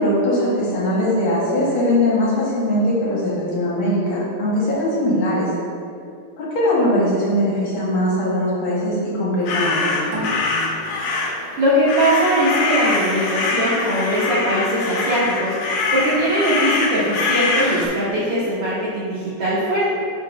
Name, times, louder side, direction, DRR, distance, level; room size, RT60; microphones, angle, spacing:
voice 1, 0.0-5.5 6.4-10.0, left 1 dB, 60° left, -7 dB, 1.3 m, -20 dB
sound 1, 9.4-17.9, left 3 dB, 85° left, 2.6 m, -23 dB
sound 2, 10.1-13.3, equal, 55° right, 1.1 m, -33 dB
voice 2, 11.6-20.0, equal, 80° right, -8 dB, 1.3 m, -21 dB
6.9 x 2.9 x 5.8 m, 2.4 s
omnidirectional pair, 4.3 m